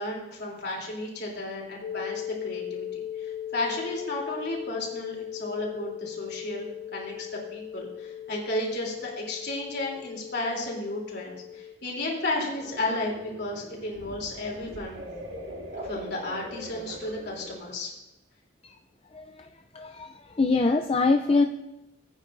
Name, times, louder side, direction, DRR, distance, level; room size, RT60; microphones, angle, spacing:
voice 1, 0.0-2.9 3.2-15.0 15.8-17.9, left 2 dB, 60° left, -2 dB, 3.3 m, -33 dB
sound 1, 1.8-11.7, left 10 dB, 80° left, 0.6 m, -38 dB
sound 2, 12.5-17.6, equal, 65° right, 2.4 m, -41 dB
voice 2, 19.7-21.4, left 3 dB, 30° left, 4 dB, 0.5 m, -23 dB
20.0 x 9.2 x 2.6 m, 0.98 s
head